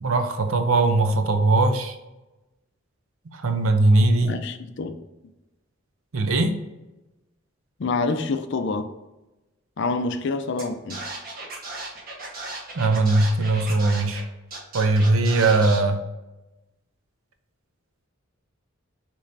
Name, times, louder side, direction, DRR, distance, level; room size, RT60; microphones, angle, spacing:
voice 1, 0.0-2.0 3.3-4.3 6.1-6.5 12.8-14.2 14.7-16.0, right 2 dB, 90° right, 7 dB, 0.6 m, -20 dB
voice 2, 4.2-5.0 7.8-8.9 9.8-11.1, left 3 dB, 60° left, 9 dB, 0.5 m, -27 dB
Scratching (performance technique), 10.6-10.7 10.9-14.2 14.5-15.8, right 2 dB, 45° right, 1.2 m, -35 dB
6.5 x 3.0 x 2.6 m, 1.0 s
head